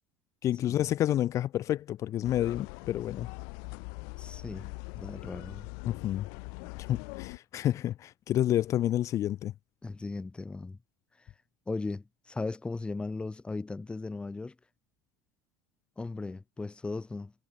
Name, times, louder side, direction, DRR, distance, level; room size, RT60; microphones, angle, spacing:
voice 1, 0.4-3.3 5.8-6.3 6.7-9.5, left 12 dB, 50° left, 2.5 m, -29 dB
sound 1, 2.2-7.4, left 39 dB, 75° left, 6.3 m, -42 dB
voice 2, 4.2-5.7 9.8-10.8 11.7-14.6 16.0-17.3, left 3 dB, 15° left, 3.4 m, -37 dB
supercardioid pair, 95°, 7 cm